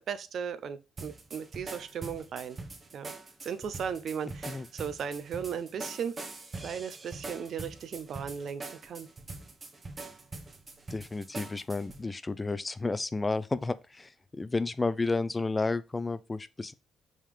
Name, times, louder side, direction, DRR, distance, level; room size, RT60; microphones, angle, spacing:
voice 1, 0.0-2.6 2.9-3.1 3.4-6.1 6.6-9.1, right 7 dB, 65° right, 0.7 m, -36 dB
sound 1, 1.0-12.0, right 3 dB, 30° right, 1.1 m, -43 dB
voice 2, 10.9-16.7, left 3 dB, 20° left, 0.5 m, -32 dB
5.5 x 3.6 x 4.9 m
cardioid pair, 90°, 0 cm